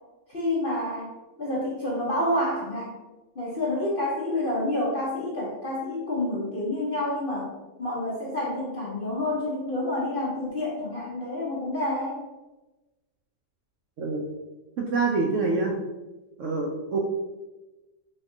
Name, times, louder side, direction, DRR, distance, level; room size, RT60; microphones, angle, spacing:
voice 1, 0.3-1.1 1.4-2.9 3.3-7.5 7.8-12.2, left 1 dB, 45° left, -5 dB, 0.7 m, -28 dB
voice 2, 14.8-15.8 16.4-17.0, right 3 dB, 65° right, -1 dB, 0.8 m, -26 dB
4.3 x 2.8 x 3.7 m, 1.1 s
omnidirectional pair, 1.8 m